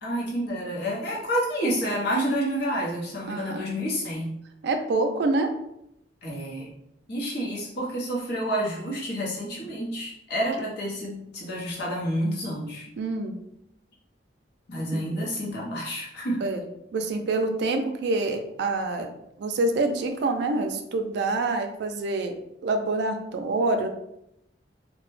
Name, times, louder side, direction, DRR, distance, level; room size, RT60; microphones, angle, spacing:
voice 1, 0.0-4.3 6.2-6.7 7.1-12.9 14.7-16.4, equal, 65° left, -4 dB, 0.8 m, -29 dB
voice 2, 3.3-3.7 4.6-5.5 13.0-13.4 14.9-15.0 16.4-16.6 16.9-19.1 19.4-22.3 22.6-23.9, right 2 dB, 65° right, 6 dB, 0.3 m, -26 dB
2.1 x 2.0 x 3.0 m, 0.80 s
head